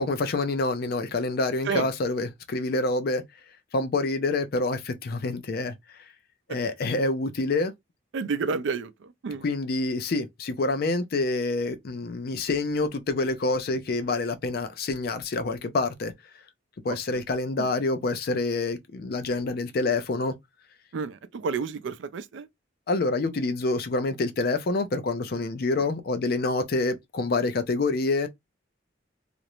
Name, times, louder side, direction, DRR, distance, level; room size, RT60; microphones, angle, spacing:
voice 1, 0.0-3.2 3.7-6.0 6.5-7.7 9.4-16.1 16.8-20.3 22.9-28.3, left 3 dB, 55° left, 0.4 m, -27 dB
voice 2, 8.1-9.4 17.6-17.7 20.9-22.5, right 5 dB, 75° right, 0.4 m, -30 dB
2.5 x 2.0 x 2.9 m
head